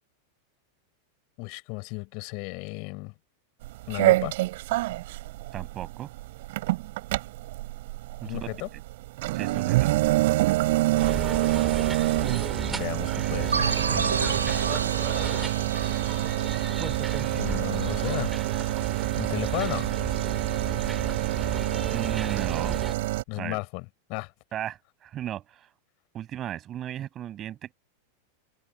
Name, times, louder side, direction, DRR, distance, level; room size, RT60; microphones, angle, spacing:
voice 1, 1.4-3.1 3.9-4.3 8.2-8.7 12.6-14.6 17.3-18.4 19.2-19.9 23.3-24.3, left 33 dB, 45° left, 5.8 m, -34 dB
sound 1, 3.6-23.2, right 18 dB, 50° right, 4.0 m, -27 dB
voice 2, 5.5-6.1 8.2-8.4 9.3-9.9 21.9-22.8 23.4-23.6 24.5-25.7 26.1-27.7, right 11 dB, 30° right, 7.0 m, -35 dB
sound 2, 11.0-22.9, right 4 dB, 10° right, 4.3 m, -35 dB
sound 3, 13.5-18.0, right 5 dB, 75° right, 3.5 m, -31 dB
figure-of-eight pair, 90°, 0 cm